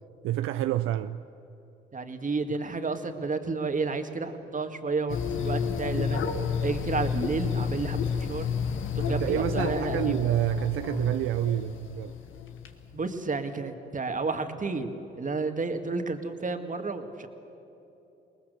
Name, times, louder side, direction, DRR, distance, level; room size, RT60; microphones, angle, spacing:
voice 1, 0.2-1.2 9.1-12.1, right 13 dB, 75° right, 0.5 m, -28 dB
voice 2, 1.9-6.2 6.6-8.0 8.3-8.5 9.0-10.2 12.9-14.9 15.2-17.3, right 4 dB, 40° right, 1.9 m, -31 dB
sound 1, 5.1-12.7, left 6 dB, 70° left, 1.5 m, -31 dB
22.5 x 19.5 x 6.7 m
supercardioid pair, 50°, 21 cm